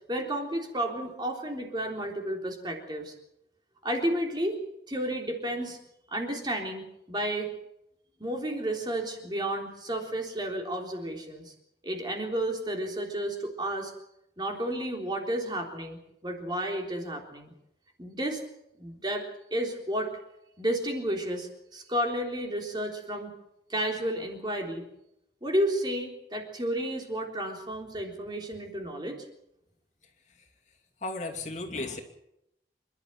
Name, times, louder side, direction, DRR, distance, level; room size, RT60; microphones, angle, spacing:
voice 1, 0.1-3.1 3.8-4.6 4.9-5.8 6.1-7.5 8.2-11.5 11.8-13.9 14.4-17.5 18.0-18.4 18.8-20.2 20.6-23.3 23.7-24.9 25.4-29.3, right 1 dB, 25° right, 2 dB, 3.6 m, -32 dB
voice 2, 31.0-32.0, left 2 dB, 40° left, 3 dB, 2.7 m, -34 dB
27.5 x 12.0 x 9.0 m, 0.82 s
head